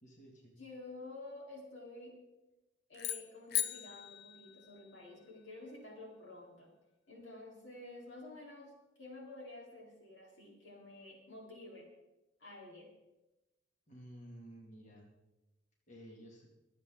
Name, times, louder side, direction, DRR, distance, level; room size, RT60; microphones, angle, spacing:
voice 1, 0.0-0.5 13.9-15.1 15.9-16.5, equal, 45° left, -2 dB, 2.6 m, -53 dB
voice 2, 0.6-2.1 2.9-6.7 7.1-11.9 12.4-12.9, left 2 dB, 90° left, -1 dB, 4.1 m, -51 dB
sound 1, 2.9-5.3, left 11 dB, 60° left, 0.7 m, -39 dB
24.5 x 8.3 x 3.9 m, 1.0 s
head